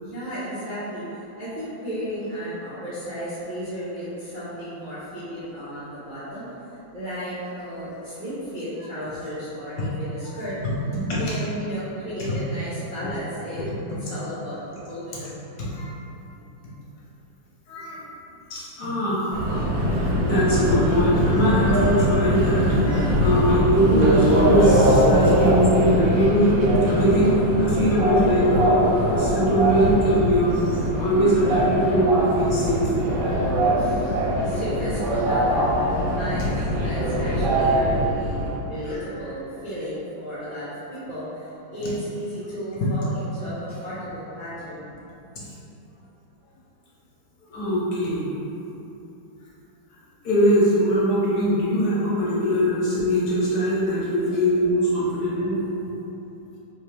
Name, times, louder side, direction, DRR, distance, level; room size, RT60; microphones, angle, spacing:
voice 1, 0.0-6.5 6.9-10.6 11.2-15.4 33.7-45.0 54.3-54.4, equal, 40° right, -14 dB, 0.7 m, -34 dB
voice 2, 17.7-18.0 18.5-32.8 38.9-39.0 41.8-41.9 45.4-45.5 47.5-48.3 50.2-55.6, equal, 65° left, -7 dB, 1.2 m, -22 dB
Subway metro underground, 19.3-38.6, equal, 85° right, 1.6 m, -21 dB
3.9 x 3.2 x 3.3 m, 3.0 s
omnidirectional pair, 2.1 m